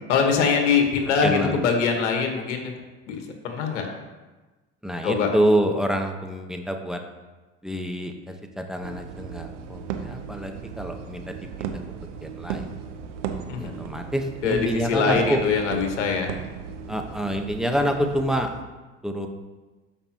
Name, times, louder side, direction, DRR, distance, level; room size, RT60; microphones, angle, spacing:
voice 1, 0.1-2.7 3.1-3.9 5.0-5.3 13.5-13.7 14.4-16.3, left 5 dB, 85° left, 3 dB, 1.4 m, -23 dB
voice 2, 1.2-1.7 4.8-7.0 7.6-11.8 12.2-12.7 13.6-15.4 16.9-18.5 19.0-19.3, equal, ahead, 4 dB, 1.1 m, -27 dB
sound 1, 8.8-18.6, right 7 dB, 90° right, 0.8 m, -36 dB
12.5 x 5.4 x 2.9 m, 1.2 s
hypercardioid pair, 70°, 35 cm